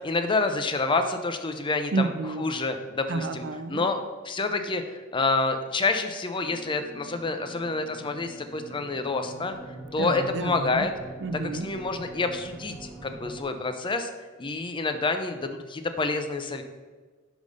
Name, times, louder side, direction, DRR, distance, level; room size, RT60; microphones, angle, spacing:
voice 1, 0.0-2.1 2.4-3.4 3.7-9.5 9.9-10.9 11.6-14.1 14.4-16.6, left 3 dB, 25° left, 7 dB, 0.5 m, -28 dB
voice 2, 1.9-2.4 3.1-3.9 10.0-10.9 11.2-11.7, right 3 dB, 60° right, 10 dB, 0.5 m, -30 dB
sound 1, 6.4-13.4, right 2 dB, 10° right, 0.8 m, -44 dB
5.3 x 5.0 x 5.2 m, 1.4 s
head